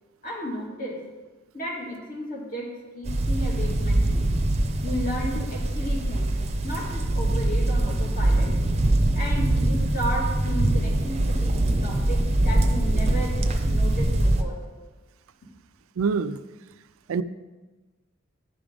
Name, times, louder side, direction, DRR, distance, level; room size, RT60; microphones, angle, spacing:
voice 1, 0.2-1.0 1.5-4.3 4.8-6.4 6.6-8.5 9.1-13.4 13.7-14.6, equal, 45° left, -2 dB, 2.1 m, -33 dB
sound 1, 3.1-14.4, right 1 dB, 30° right, 0.6 m, -23 dB
voice 2, 16.0-16.4 17.1-17.2, right 5 dB, 85° right, 13 dB, 0.4 m, -24 dB
11.0 x 5.0 x 5.1 m, 1.2 s
head